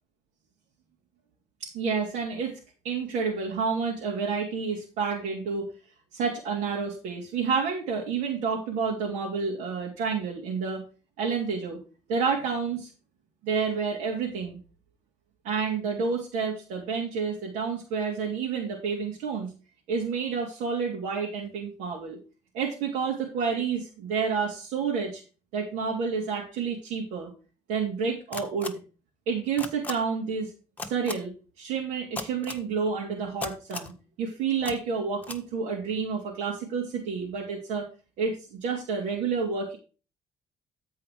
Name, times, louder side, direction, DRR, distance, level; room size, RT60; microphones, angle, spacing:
voice 1, 1.6-2.6 2.8-5.7 6.1-10.8 11.2-11.8 12.1-12.9 13.4-14.6 15.4-19.5 19.9-22.2 22.5-25.2 25.5-27.3 27.7-28.8 29.3-30.5 30.8-33.9 34.2-37.9 38.2-39.8, right 5 dB, 85° right, -2 dB, 2.9 m, -29 dB
sound 1, 28.3-28.7 29.6-29.9 30.8-31.1 32.2-32.6 33.4-33.9 34.6-34.7 35.2-35.4, left 3 dB, 10° left, 1.7 m, -35 dB
13.0 x 4.8 x 4.9 m, 0.33 s
cardioid pair, 115°, 12 cm